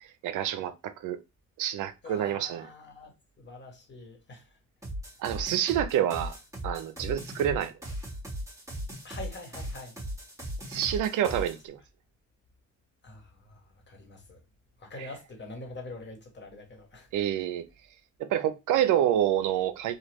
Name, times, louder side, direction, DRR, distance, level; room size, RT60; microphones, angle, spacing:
voice 1, 0.0-1.2 1.6-2.7 5.2-6.4 6.6-7.7 10.7-11.8 17.1-17.6 18.2-20.0, right 11 dB, 85° right, 0.5 m, -28 dB
voice 2, 2.0-4.6 9.0-10.0 13.0-14.4 14.8-17.1, left 2 dB, 35° left, 1.2 m, -45 dB
sound 1, 4.8-11.6, equal, 10° right, 1.6 m, -38 dB
3.3 x 2.2 x 3.0 m
cardioid pair, 90°, 30 cm